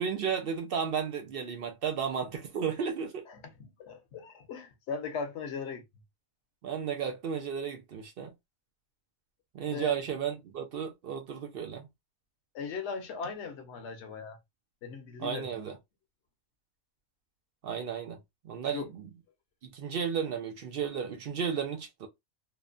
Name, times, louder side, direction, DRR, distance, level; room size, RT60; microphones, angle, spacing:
voice 1, 0.0-3.2 6.6-8.3 9.5-11.9 15.2-15.8 17.6-18.2 18.4-19.1 19.7-22.1, right 7 dB, 70° right, 0.5 m, -33 dB
voice 2, 3.3-5.8 9.7-9.9 12.5-14.4 14.8-15.7 18.7-18.9, left 5 dB, 60° left, 1.0 m, -38 dB
3.0 x 2.1 x 2.4 m
omnidirectional pair, 1.5 m